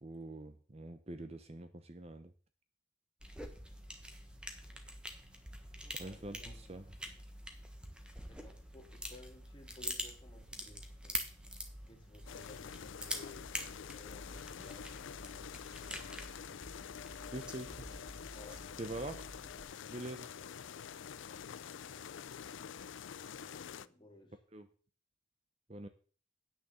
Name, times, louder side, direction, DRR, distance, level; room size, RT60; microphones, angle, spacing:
voice 1, 0.0-2.3 6.0-6.9 17.3-17.9 18.8-19.3 19.9-20.3 24.5-24.7 25.7-25.9, right 2 dB, 30° right, 0.7 m, -44 dB
sound 1, 3.2-19.6, equal, 5° right, 1.2 m, -46 dB
voice 2, 5.8-6.8 8.3-11.3 11.8-13.5 13.9-15.1 17.8-18.7 23.4-24.4, left 2 dB, 25° left, 2.2 m, -58 dB
sound 2, 12.3-23.9, left 7 dB, 75° left, 0.4 m, -47 dB
9.1 x 6.7 x 6.9 m
head